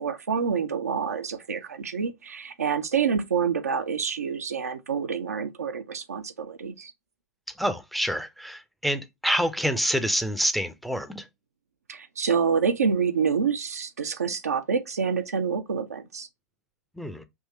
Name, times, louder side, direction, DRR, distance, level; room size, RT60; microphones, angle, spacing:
voice 1, 0.0-6.9 11.9-16.3, right 6 dB, 70° right, 0.6 m, -27 dB
voice 2, 7.6-11.2 17.0-17.2, equal, ahead, 0.5 m, -27 dB
3.7 x 2.8 x 4.1 m
figure-of-eight pair, 95°, 9 cm